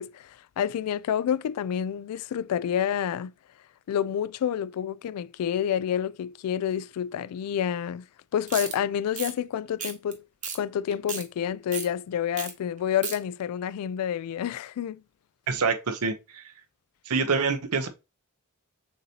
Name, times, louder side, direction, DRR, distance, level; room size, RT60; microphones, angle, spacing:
voice 1, 0.0-3.3 3.9-8.1 8.3-10.2 10.5-15.0, left 9 dB, 85° left, 0.3 m, -29 dB
sound 1, 8.5-8.7 9.1-9.3 9.8-10.1 10.4-10.6 10.9-11.2 11.7-11.9 12.4-12.5 12.8-13.2, right 6 dB, 35° right, 1.0 m, -33 dB
voice 2, 15.5-16.4 17.1-17.9, right 4 dB, 85° right, 0.8 m, -26 dB
6.6 x 2.8 x 2.8 m
head